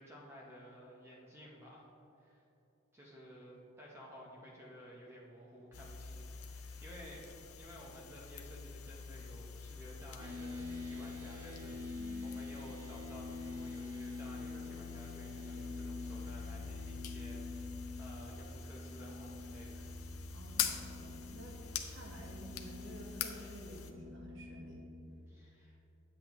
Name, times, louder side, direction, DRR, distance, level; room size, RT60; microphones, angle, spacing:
voice 1, 0.0-1.9 2.2-2.4 2.9-7.3 7.6-17.7 18.0-20.0 25.3-25.8, equal, 10° right, -4 dB, 0.8 m, -54 dB
sound 1, 5.7-23.9, left 7 dB, 80° left, 0.6 m, -45 dB
sound 2, 10.2-25.2, left 3 dB, 90° right, 1.0 m, -46 dB
voice 2, 11.9-12.3 14.5-14.6 20.3-24.9, right 1 dB, 60° right, -1 dB, 1.2 m, -51 dB
8.8 x 7.8 x 3.0 m, 2.9 s
head